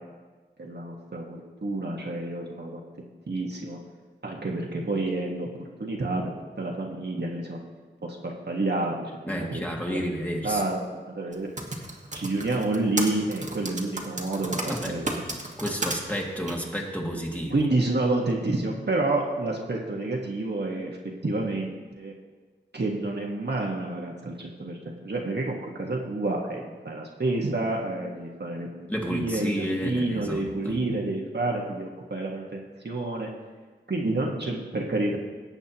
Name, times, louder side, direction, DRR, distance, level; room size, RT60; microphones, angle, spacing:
voice 1, 0.6-2.9 3.3-3.8 4.2-5.5 5.8-6.3 6.6-7.6 8.0-8.9 9.4-9.6 9.9-10.0 10.4-11.5 12.1-15.1 17.5-21.0 21.2-22.1 22.7-33.3 33.9-35.2, right 2 dB, 60° right, -1 dB, 1.6 m, -29 dB
voice 2, 9.3-10.6 14.7-17.5 28.9-30.8, equal, 10° left, -2 dB, 2.0 m, -31 dB
Typing, 11.3-16.0 16.5-16.6, right 2 dB, 40° right, 1.6 m, -32 dB
17.5 x 8.0 x 3.0 m, 1.4 s
wide cardioid pair, 45°, 19 cm